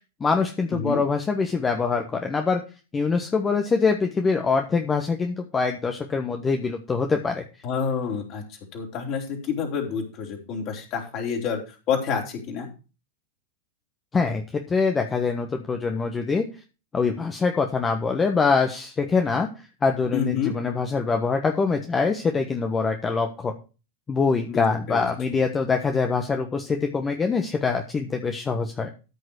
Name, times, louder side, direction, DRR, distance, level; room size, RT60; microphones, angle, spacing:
voice 1, 0.2-2.6 2.9-7.4 14.1-16.5 16.9-19.5 19.8-23.5 24.1-28.9, left 4 dB, 15° left, 5 dB, 1.3 m, -24 dB
voice 2, 0.7-1.0 7.6-8.4 8.7-11.6 11.9-12.7 20.1-20.5 24.5-25.1, left 6 dB, 40° left, 0 dB, 4.2 m, -28 dB
14.0 x 6.5 x 4.9 m, 0.32 s
figure-of-eight pair, 90°, 0 cm